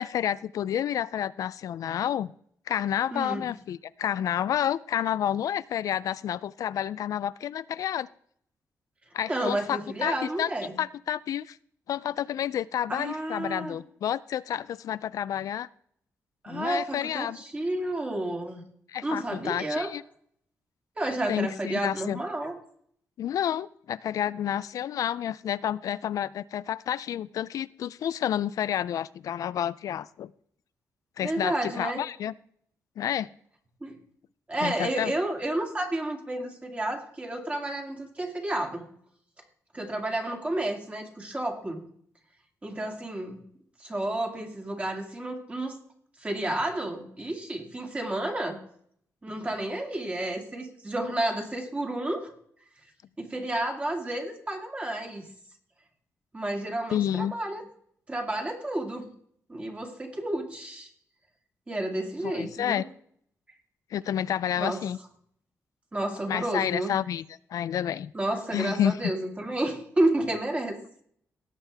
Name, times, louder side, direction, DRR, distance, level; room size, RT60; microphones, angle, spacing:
voice 1, 0.0-2.3 2.7-8.1 9.1-10.5 10.8-11.6 11.9-15.7 16.5-17.4 18.9-20.0 21.3-22.2 23.2-30.3 31.2-32.3 33.0-33.3 34.6-35.1 56.9-57.3 62.2-62.8 63.9-65.0 66.3-67.2 67.5-68.1 68.5-69.0, left 10 dB, 75° left, 17 dB, 0.3 m, -30 dB
voice 2, 3.1-3.4 9.3-10.7 12.9-13.8 16.4-18.6 19.0-19.9 21.0-22.5 31.2-32.0 33.8-34.0 34.5-38.9 39.7-41.8 42.6-43.4 43.8-45.8 46.2-48.6 49.2-52.3 53.2-55.3 56.3-57.7 58.1-59.1 59.5-60.9 61.7-62.8 64.6-64.8 65.9-66.9 68.1-70.8, right 1 dB, 20° right, 2 dB, 2.1 m, -31 dB
17.5 x 7.4 x 3.4 m, 0.65 s
cardioid pair, 125°, 6 cm